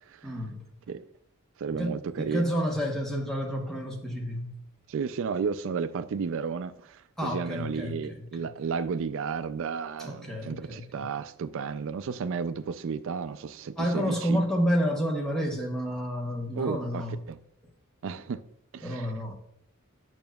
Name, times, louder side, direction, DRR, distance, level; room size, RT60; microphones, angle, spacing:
voice 1, 0.2-0.6 1.7-4.6 7.2-8.3 10.0-11.1 13.8-17.2 18.8-19.3, equal, ahead, 1.0 m, -30 dB
voice 2, 1.6-2.5 4.9-14.4 16.5-17.4 18.0-18.5 18.7-19.1, right 5 dB, 60° right, 0.4 m, -33 dB
8.8 x 6.1 x 2.3 m
head